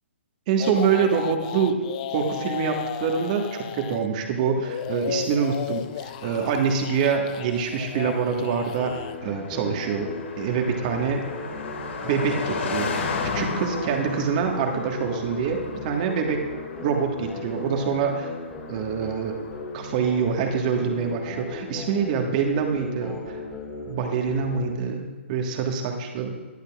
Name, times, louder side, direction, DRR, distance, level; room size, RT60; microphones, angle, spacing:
voice 1, 0.5-1.8 2.1-3.5 3.7-11.2 12.0-12.9 13.3-16.4 16.8-18.3 18.7-19.3 19.7-23.4 23.9-26.3, right 6 dB, 35° right, 3 dB, 1.5 m, -25 dB
sound 1, 0.6-4.1 4.6-9.2, left 11 dB, 35° left, 0.4 m, -34 dB
Car passing by, 4.7-21.2, left 4 dB, 65° left, 2.1 m, -36 dB
sound 2, 8.8-24.8, left 3 dB, 10° left, 2.0 m, -37 dB
21.5 x 8.2 x 2.4 m, 1.3 s
hypercardioid pair, 145°, 7 cm